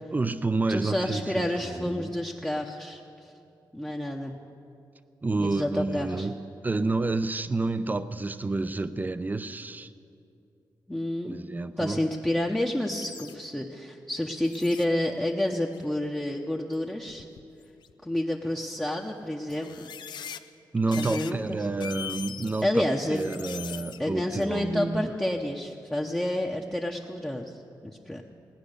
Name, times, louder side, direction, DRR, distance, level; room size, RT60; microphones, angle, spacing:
voice 1, 0.1-2.1 5.2-6.4 6.6-9.9 11.2-12.0 20.7-22.8 23.1-25.1, right 3 dB, 25° right, 12 dB, 0.6 m, -29 dB
voice 2, 0.7-3.0 3.7-4.4 5.4-6.3 10.9-11.5 11.8-17.2 18.0-19.9 21.0-21.7 22.6-23.2 24.0-27.4 27.8-28.2, left 1 dB, 10° left, -1 dB, 0.9 m, -29 dB
sound 1, 13.0-13.3 14.4-14.8 15.7-16.0 16.7-16.8 17.1-17.9 18.8-18.9 19.5-20.4 20.9-21.3 21.6-22.7 23.1-24.0 24.4-24.5, left 8 dB, 75° left, 0.6 m, -41 dB
18.0 x 9.5 x 6.6 m, 2.6 s
cardioid pair, 80°, 8 cm